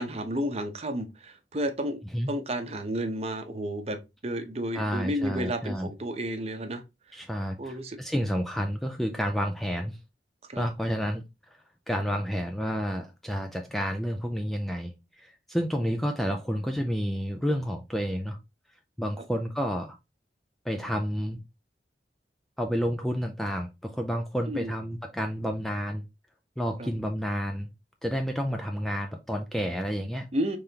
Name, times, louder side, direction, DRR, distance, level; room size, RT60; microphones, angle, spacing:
voice 1, 0.0-2.0 2.3-4.0 4.2-6.8 7.6-8.0 10.5-10.7 24.5-24.7 26.8-26.9 30.3-30.6, equal, 35° right, 0.8 m, -31 dB
voice 2, 4.7-5.9 7.1-10.0 10.6-11.6 11.9-18.4 19.0-20.0 20.7-21.4 22.6-26.0 26.6-27.7 28.0-30.3, equal, ahead, 0.4 m, -30 dB
5.1 x 3.4 x 2.8 m
head